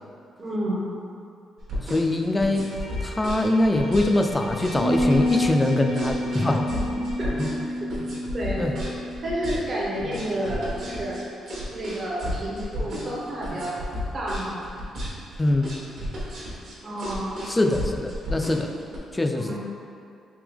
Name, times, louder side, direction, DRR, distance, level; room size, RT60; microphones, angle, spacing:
voice 1, 0.4-0.9 6.7-7.3 8.3-8.7 9.2-11.2 11.7-13.7 14.1-14.6 16.8-17.4 19.3-19.6, right 1 dB, 40° right, -6 dB, 0.7 m, -30 dB
sound 1, 1.6-19.0, left 1 dB, 65° right, 1.0 m, -33 dB
voice 2, 1.9-2.7 3.0-6.6 7.4-7.5 8.6-8.7 15.4-15.8 17.5-18.7 19.1-19.6, left 2 dB, 15° left, 4 dB, 0.3 m, -23 dB
Bowed string instrument, 2.5-7.7, left 1 dB, 45° left, 0.7 m, -43 dB
sound 2, 4.7-11.0, equal, 80° left, 1.1 m, -29 dB
3.5 x 2.8 x 3.4 m, 2.5 s
cardioid pair, 90°, 0 cm